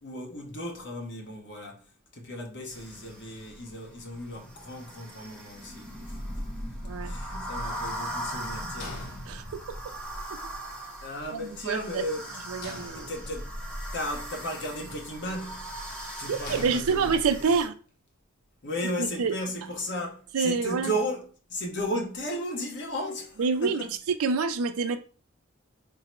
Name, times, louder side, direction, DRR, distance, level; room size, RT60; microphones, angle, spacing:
voice 1, 0.0-1.8 2.1-6.2 7.0-9.1 11.0-12.2 12.9-13.5 13.9-15.7 16.2-17.5 18.6-23.9, equal, 55° left, 0.9 m, -35 dB
sound 1, 2.7-17.7, equal, 5° left, 0.8 m, -39 dB
voice 2, 6.8-7.1 9.3-9.4 11.6-12.0 12.5-13.1 16.3-17.7 19.0-19.3 20.3-20.9 23.4-23.8 24.1-25.0, right 5 dB, 85° right, 0.4 m, -26 dB
sound 2, 8.8-9.9 12.6-13.6 16.5-17.6, left 2 dB, 85° left, 0.8 m, -43 dB
3.8 x 2.0 x 4.4 m
head